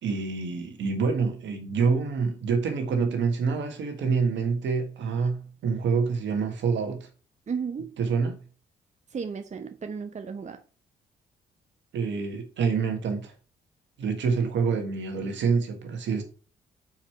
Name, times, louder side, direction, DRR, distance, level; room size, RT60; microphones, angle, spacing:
voice 1, 0.0-7.1 8.0-8.4 11.9-13.3 14.0-16.2, right 5 dB, 70° right, 1.6 m, -27 dB
voice 2, 7.5-7.9 9.1-10.6, right 6 dB, 35° right, 0.7 m, -34 dB
5.7 x 4.7 x 4.5 m
supercardioid pair, 50°, 19 cm